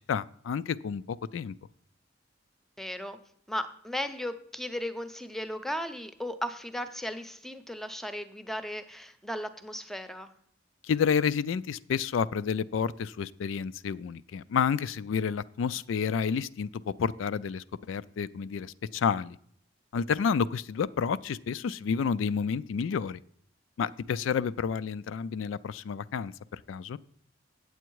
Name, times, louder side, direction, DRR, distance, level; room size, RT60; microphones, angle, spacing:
voice 1, 0.1-1.5 10.8-19.4 19.9-23.2 23.8-27.0, left 6 dB, 85° left, 17 dB, 0.3 m, -30 dB
voice 2, 2.8-3.2 3.5-10.3, equal, ahead, 11 dB, 0.6 m, -36 dB
8.6 x 8.0 x 4.6 m, 0.66 s
head